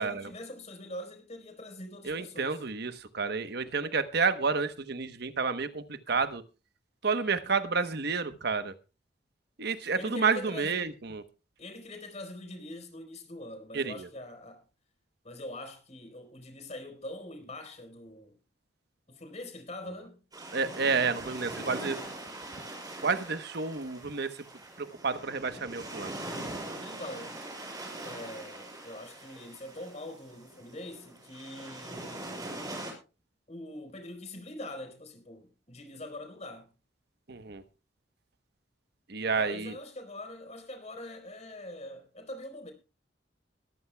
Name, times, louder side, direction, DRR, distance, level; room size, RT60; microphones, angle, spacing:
voice 1, 0.0-2.6 10.0-10.9 11.6-14.6 15.2-18.4 19.1-20.2 26.8-27.4 28.0-32.3 33.5-36.7 39.2-42.7, left 1 dB, 40° left, 4.1 m, -43 dB
voice 2, 2.0-6.4 7.0-8.7 9.6-11.2 13.7-14.1 20.5-22.0 23.0-24.4 24.8-26.1 37.3-37.6 39.1-39.7, right 4 dB, 65° right, 1.0 m, -30 dB
sound 1, 20.3-32.9, right 1 dB, 20° right, 6.0 m, -42 dB
21.5 x 14.0 x 2.3 m
head